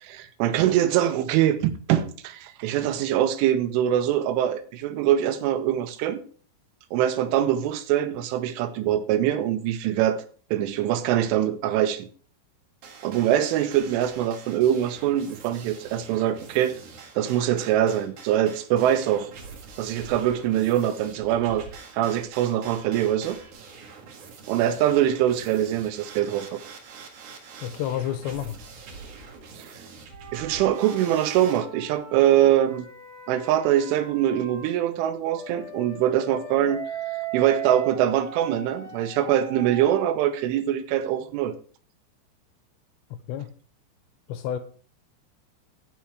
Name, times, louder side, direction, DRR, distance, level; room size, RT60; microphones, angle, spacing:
voice 1, 0.0-6.2 6.9-10.2 10.5-12.1 13.0-16.7 17.2-19.3 19.8-21.7 21.9-23.4 24.5-26.6 29.6-29.7 30.3-32.9 33.3-36.8 37.3-41.5, right 11 dB, 85° right, 3.4 m, -23 dB
sound 1, 12.8-31.6, right 5 dB, 55° right, 2.3 m, -45 dB
voice 2, 27.6-28.6 43.3-43.5 44.3-44.6, left 10 dB, 80° left, 2.7 m, -29 dB
sound 2, 30.1-34.7 35.3-40.1, right 8 dB, 15° right, 2.1 m, -38 dB
15.0 x 5.9 x 4.6 m
omnidirectional pair, 5.6 m